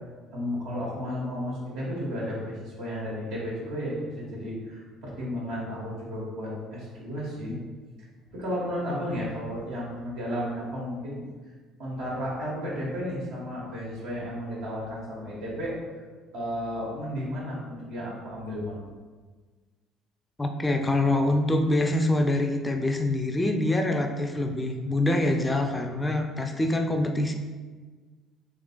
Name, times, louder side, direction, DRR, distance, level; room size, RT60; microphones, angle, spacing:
voice 1, 0.3-7.6 8.3-11.3 11.8-15.7 16.3-18.8, equal, 75° right, -6 dB, 1.2 m, -33 dB
voice 2, 20.4-27.3, left 1 dB, 20° left, 4 dB, 0.4 m, -25 dB
3.8 x 2.9 x 2.3 m, 1.4 s
hypercardioid pair, 60°, 0 cm